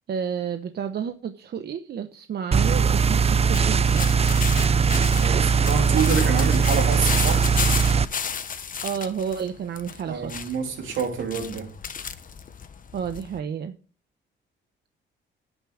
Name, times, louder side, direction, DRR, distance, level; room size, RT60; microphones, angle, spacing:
voice 1, 0.1-4.0 8.8-10.5 12.9-13.7, right 7 dB, 55° right, 0.9 m, -31 dB
sound 1, 2.5-8.1, right 5 dB, 30° right, 0.6 m, -20 dB
sound 2, 3.5-13.4, left 7 dB, 45° left, 1.1 m, -33 dB
voice 2, 5.1-7.5 10.1-11.7, right 6 dB, 80° right, 3.3 m, -27 dB
10.0 x 9.0 x 4.9 m
cardioid pair, 90°, 20 cm